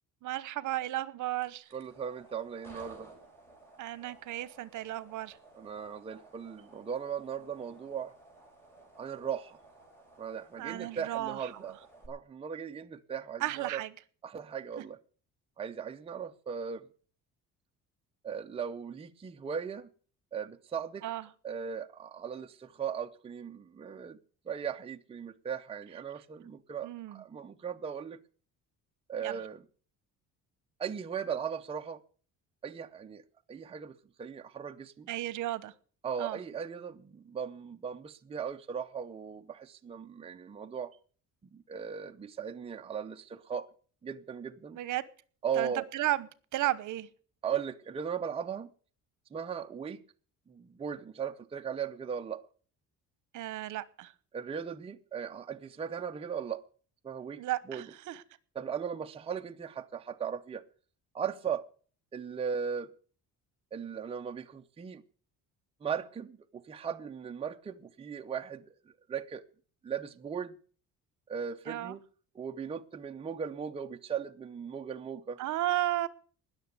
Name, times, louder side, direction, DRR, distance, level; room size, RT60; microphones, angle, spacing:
voice 1, 0.2-1.7 3.8-5.4 10.6-11.5 13.4-13.9 14.8-14.9 21.0-21.2 26.8-27.2 29.2-29.4 35.1-35.7 36.2-36.4 44.7-45.0 45.6-47.1 53.3-54.1 57.4-58.2 71.7-72.0 75.4-76.1, right 14 dB, 70° right, 1.1 m, -34 dB
sound 1, 1.3-12.1, right 2 dB, 5° left, 4.7 m, -56 dB
voice 2, 1.7-3.1 5.6-8.1 9.0-9.6 10.2-11.8 12.1-13.8 14.2-15.0 15.6-16.8 18.2-19.9 20.3-21.0 21.4-24.2 24.5-28.2 29.1-29.6 30.8-32.0 32.6-33.2 33.5-35.1 36.0-40.9 41.5-43.7 44.0-44.8 45.4-45.9 47.4-48.7 49.3-50.0 50.5-52.4 54.3-56.6 57.0-57.4 57.7-57.9 58.5-60.6 61.1-61.7 62.1-62.9 63.7-65.0 65.8-68.6 69.1-69.4 69.8-70.6 71.3-72.0 72.3-75.4, right 7 dB, 20° right, 0.6 m, -38 dB
20.0 x 6.9 x 8.1 m
cardioid pair, 170°, 32 cm